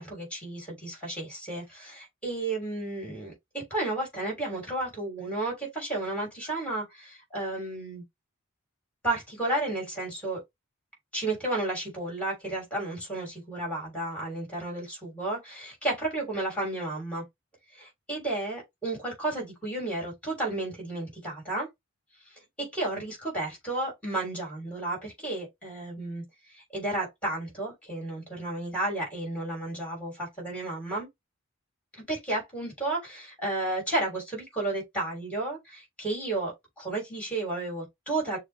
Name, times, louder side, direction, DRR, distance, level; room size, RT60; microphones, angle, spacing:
voice 1, 0.0-8.0 9.0-10.4 11.1-17.2 17.7-21.7 22.2-26.2 26.5-31.1 31.9-38.4, right 2 dB, 5° left, 3.2 m, -32 dB
6.4 x 2.2 x 3.4 m
head